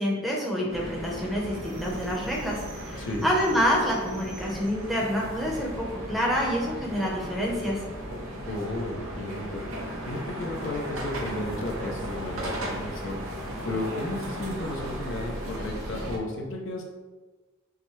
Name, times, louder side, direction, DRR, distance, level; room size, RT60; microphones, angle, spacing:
voice 1, 0.0-7.8, equal, ahead, -3 dB, 0.7 m, -27 dB
sound 1, 0.7-16.2, equal, 90° right, 0.8 m, -36 dB
voice 2, 3.0-3.3 8.5-9.6 10.0-13.2 13.6-16.8, left 1 dB, 60° left, 0 dB, 0.5 m, -33 dB
5.6 x 2.1 x 3.1 m, 1.3 s
head